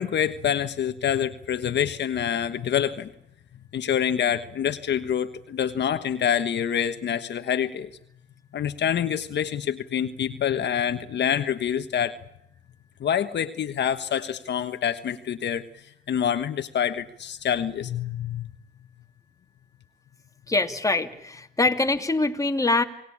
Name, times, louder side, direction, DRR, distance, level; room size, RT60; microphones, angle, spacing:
voice 1, 0.0-3.1 3.7-7.9 8.5-12.1 13.0-15.7 16.1-18.5, left 9 dB, 60° left, 9 dB, 1.4 m, -26 dB
voice 2, 20.5-22.8, left 2 dB, 15° left, 5 dB, 2.7 m, -24 dB
29.0 x 19.0 x 8.8 m, 0.77 s
cardioid pair, 90°, 20 cm